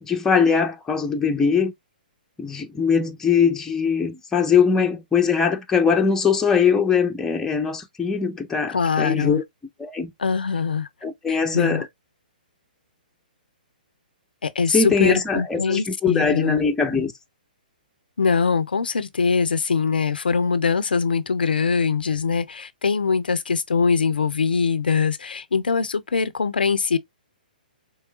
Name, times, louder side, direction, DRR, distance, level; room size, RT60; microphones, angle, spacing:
voice 1, 0.0-1.7 2.4-9.4 9.8-10.1 11.0-11.9 14.7-17.1, left 6 dB, 10° left, 0.7 m, -21 dB
voice 2, 8.7-9.4 10.2-10.9 11.3-11.9 14.4-16.6 18.2-27.0, left 5 dB, 75° left, 0.5 m, -22 dB
4.6 x 3.2 x 2.3 m
figure-of-eight pair, 125°, 5 cm